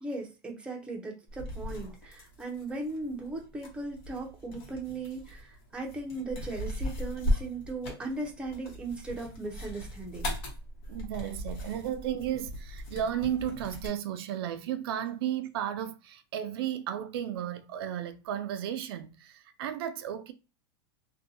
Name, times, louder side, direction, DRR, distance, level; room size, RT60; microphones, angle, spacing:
voice 1, 0.0-10.3, right 2 dB, 10° right, 0.6 m, -38 dB
sound 1, 1.3-13.9, equal, 70° left, 1.1 m, -38 dB
voice 2, 10.9-20.3, right 10 dB, 75° right, 0.4 m, -34 dB
2.6 x 2.2 x 2.7 m
supercardioid pair, 145°, 13 cm